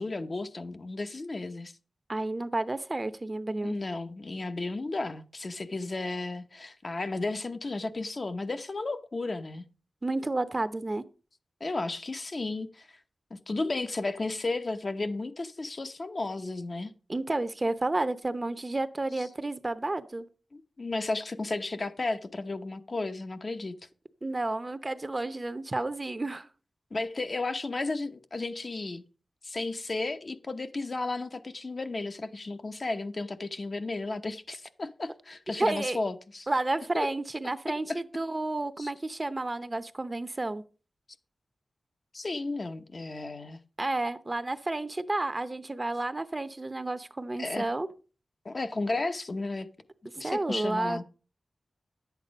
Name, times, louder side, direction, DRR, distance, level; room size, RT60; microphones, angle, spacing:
voice 1, 0.0-1.7 3.6-9.7 11.6-12.9 13.3-16.9 19.2-19.3 20.5-23.8 26.9-29.0 29.4-36.5 36.9-37.1 37.9-38.0 38.8-38.9 42.1-43.6 47.4-47.7 48.4-49.7 50.2-51.0, left 3 dB, 45° left, 0.9 m, -33 dB
voice 2, 2.1-3.7 10.0-11.0 17.1-20.2 24.2-26.5 35.6-36.0 36.5-40.6 43.8-47.9 50.1-51.0, right 2 dB, 30° right, 0.8 m, -31 dB
11.0 x 8.3 x 5.2 m
wide cardioid pair, 105°, 0 cm